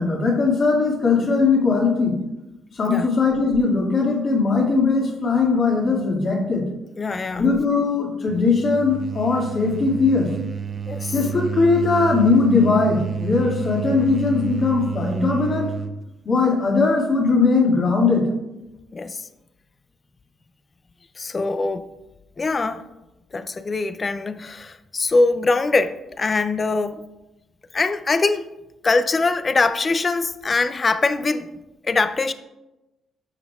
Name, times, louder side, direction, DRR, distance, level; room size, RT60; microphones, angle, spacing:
voice 1, 0.0-2.1 2.7-6.7 7.4-10.3 11.1-15.7 16.2-18.3, left 4 dB, 50° left, 2.1 m, -19 dB
voice 2, 7.0-7.4 10.9-11.1 18.9-19.2 21.2-21.9 22.4-22.8 23.3-27.0 27.7-28.4 28.8-31.5 31.8-32.3, left 3 dB, 30° left, 0.4 m, -22 dB
sound 1, 8.3-16.0, right 7 dB, 35° right, 0.6 m, -30 dB
12.5 x 5.2 x 2.4 m
cardioid pair, 90°, 0 cm